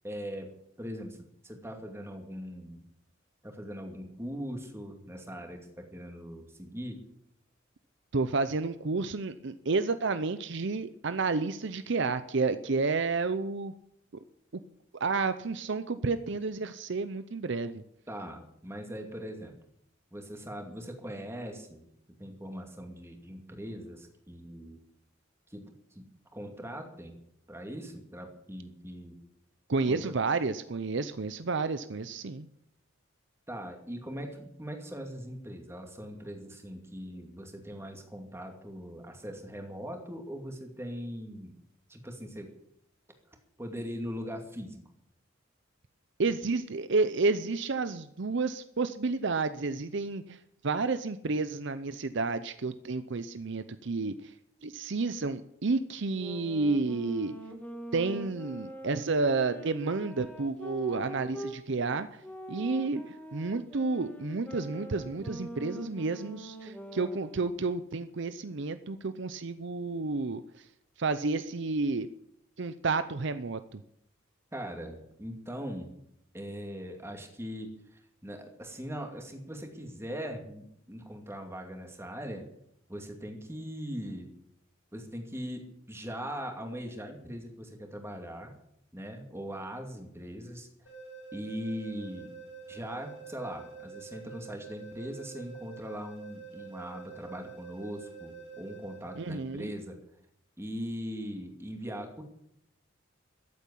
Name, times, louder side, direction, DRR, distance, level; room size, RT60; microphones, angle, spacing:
voice 1, 0.0-2.8 3.4-7.0 18.1-19.6 20.1-21.8 22.2-24.8 25.5-27.2 27.5-29.2 29.9-30.1 33.5-41.5 41.9-42.5 43.6-44.8 74.5-75.9 76.3-82.5 82.9-84.3 84.9-88.5 88.9-90.7 91.3-92.3 92.7-100.0 100.6-102.2, equal, 15° right, 3 dB, 2.5 m, -40 dB
voice 2, 8.1-13.7 14.9-17.8 29.7-32.5 46.2-50.4 50.6-54.3 54.6-57.3 57.9-62.2 62.5-70.4 71.0-72.1 72.6-73.8 99.2-99.7, right 3 dB, 60° right, 12 dB, 0.7 m, -30 dB
sound 1, 56.1-61.6 62.2-67.4, right 1 dB, 5° left, 1.9 m, -44 dB
sound 2, 90.9-99.8, right 6 dB, 70° left, 6.0 m, -47 dB
14.0 x 8.5 x 10.0 m, 0.75 s
head